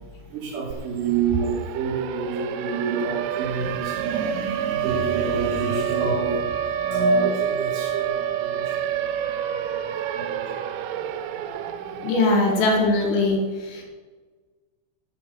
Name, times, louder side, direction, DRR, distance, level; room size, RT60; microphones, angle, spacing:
voice 1, 0.3-6.4 6.9-9.0 9.3-9.8 10.2-10.4, right 4 dB, 60° right, -2 dB, 3.8 m, -27 dB
Siren, 0.7-0.8 1.1-13.1, right 11 dB, 85° right, 3.5 m, -29 dB
voice 2, 12.0-13.4 13.7-13.8, left 2 dB, 75° left, 0 dB, 4.2 m, -20 dB
11.5 x 5.8 x 7.7 m, 1.4 s
omnidirectional pair, 6.0 m